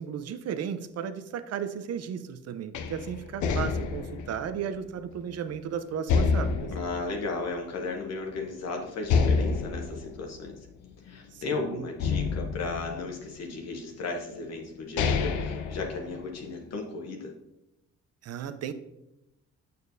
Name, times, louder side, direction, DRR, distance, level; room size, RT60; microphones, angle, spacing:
voice 1, 0.0-6.7 11.3-11.8 18.2-18.7, right 8 dB, 55° right, 11 dB, 0.6 m, -35 dB
sound 1, 2.7-5.6 6.1-8.0 8.4-8.5 9.1-11.4 12.0-13.6 14.3-14.4 14.8-16.6, left 5 dB, 75° left, 0.7 m, -29 dB
voice 2, 6.7-10.6 11.0-17.3, left 3 dB, 60° left, 1 dB, 1.0 m, -35 dB
6.8 x 6.5 x 2.7 m, 0.88 s
cardioid pair, 90°, 30 cm